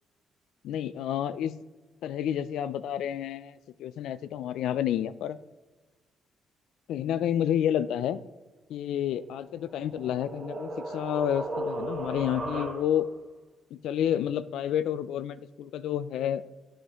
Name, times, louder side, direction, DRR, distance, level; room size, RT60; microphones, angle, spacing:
voice 1, 0.6-1.5 2.0-5.4 6.9-8.2 8.7-13.1 13.7-16.4, left 10 dB, 80° left, 14 dB, 0.4 m, -30 dB
sound 1, 9.4-13.2, right 1 dB, 55° right, 1.7 m, -36 dB
11.0 x 5.0 x 3.0 m, 1.2 s
cardioid pair, 90°, 0 cm